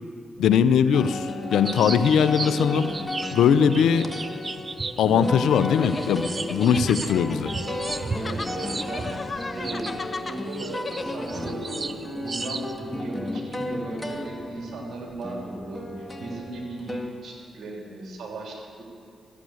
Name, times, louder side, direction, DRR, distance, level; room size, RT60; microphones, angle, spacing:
voice 1, 0.4-2.9 3.3-4.1 5.0-7.5, left 7 dB, 80° left, 13 dB, 0.5 m, -20 dB
sound 1, 0.9-17.1, left 1 dB, 15° left, 1.7 m, -34 dB
sound 2, 1.6-5.7 6.0-10.0 10.5-12.7, right 3 dB, 40° right, 0.7 m, -35 dB
sound 3, 5.5-11.5, left 3 dB, 40° left, 0.8 m, -37 dB
voice 2, 8.2-9.2 9.5-18.8, right 2 dB, 65° right, -1 dB, 3.1 m, -37 dB
13.5 x 8.4 x 8.1 m, 2.5 s
hypercardioid pair, 40°, 0 cm